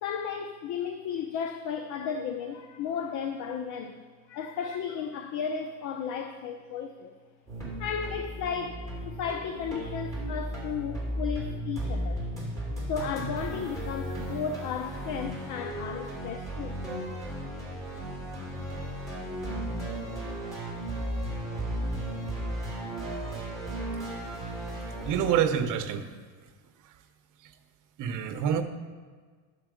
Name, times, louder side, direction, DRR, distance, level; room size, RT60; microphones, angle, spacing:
voice 1, 0.0-4.0 4.3-7.1 7.8-12.3 12.9-16.8, left 7 dB, 50° left, 7 dB, 0.7 m, -34 dB
sound 1, 7.5-25.4, right 1 dB, 10° left, 3.2 m, -35 dB
voice 2, 25.0-26.1 28.0-28.6, right 8 dB, 50° right, 7 dB, 0.9 m, -26 dB
11.5 x 7.0 x 5.0 m, 1.5 s
cardioid pair, 145°, 40 cm